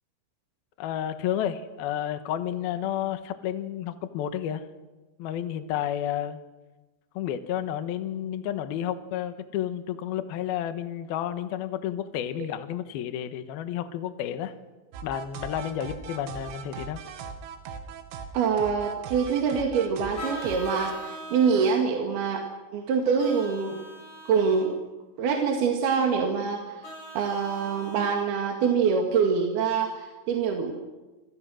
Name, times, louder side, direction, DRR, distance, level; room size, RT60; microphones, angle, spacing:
voice 1, 0.8-4.6 5.2-6.4 7.2-14.5 15.0-17.0, left 10 dB, 70° left, 9 dB, 2.4 m, -31 dB
sound 1, 14.9-20.9, right 6 dB, 80° right, 4.6 m, -39 dB
voice 2, 18.3-22.5 22.7-23.8 24.3-24.7 25.2-26.8 27.2-30.7, right 6 dB, 55° right, 2 dB, 3.6 m, -25 dB
Vehicle horn car horn honking, 20.2-21.7 23.2-24.7 26.8-28.0, equal, 45° left, 9.3 m, -41 dB
28.0 x 25.5 x 6.4 m, 1.2 s
omnidirectional pair, 5.9 m